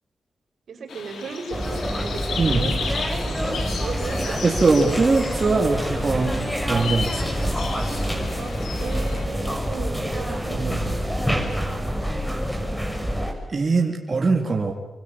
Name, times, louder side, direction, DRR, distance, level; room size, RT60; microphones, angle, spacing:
voice 1, 0.7-4.4 8.3-11.5, right 4 dB, 75° right, 5 dB, 5.5 m, -36 dB
sound 1, 0.9-9.2, left 5 dB, 90° left, 3.3 m, -35 dB
sound 2, 1.5-13.3, equal, 5° left, 6.1 m, -27 dB
voice 2, 4.4-6.4 6.7-7.7 10.5-10.7 13.5-14.7, right 3 dB, 40° right, 1 dB, 3.5 m, -21 dB
26.5 x 24.0 x 8.8 m, 0.95 s
cardioid pair, 80°, 0 cm